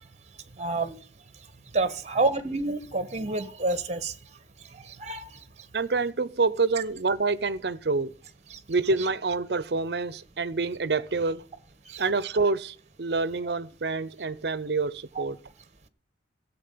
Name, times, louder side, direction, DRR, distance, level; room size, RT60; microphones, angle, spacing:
voice 1, 0.6-1.0 1.7-4.1 4.7-5.4 8.5-8.6 11.9-12.0 15.1-15.2, right 2 dB, 40° right, 1.2 m, -28 dB
voice 2, 5.7-8.1 8.7-11.4 12.0-15.4, right 3 dB, 60° right, 0.7 m, -27 dB
14.0 x 7.4 x 8.5 m
head